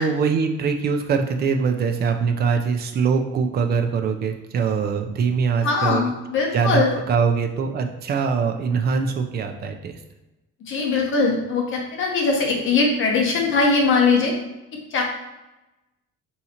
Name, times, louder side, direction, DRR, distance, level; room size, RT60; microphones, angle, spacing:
voice 1, 0.0-6.1 6.5-9.9, right 5 dB, 35° right, 5 dB, 0.4 m, -23 dB
voice 2, 5.6-7.0 10.7-14.3 14.9-15.0, left 4 dB, 40° left, 0 dB, 0.9 m, -21 dB
3.6 x 2.8 x 4.3 m, 1.0 s
cardioid pair, 170°, 31 cm